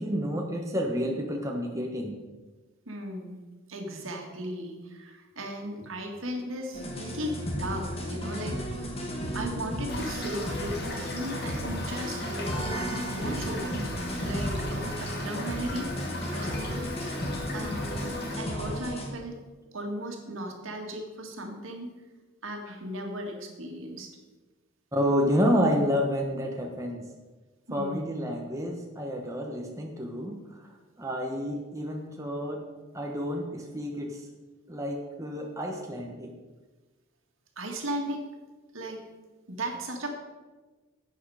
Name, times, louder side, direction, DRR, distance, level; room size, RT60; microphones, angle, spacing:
voice 1, 0.0-2.2 24.9-27.1 27.7-32.7 32.9-34.2 34.7-36.4, equal, 15° right, 0 dB, 1.1 m, -29 dB
voice 2, 2.9-3.4 3.7-15.9 16.3-17.3 17.5-19.4 19.7-21.9 22.4-24.1 27.7-28.1 37.6-38.2 38.7-39.0 39.5-40.1, right 1 dB, 75° right, 2 dB, 1.9 m, -37 dB
sound 1, 6.7-19.1, equal, 30° left, 1.6 m, -34 dB
Toilet flush / Fill (with liquid), 9.9-18.4, left 2 dB, 50° left, 1.9 m, -38 dB
11.5 x 8.4 x 4.9 m, 1.3 s
head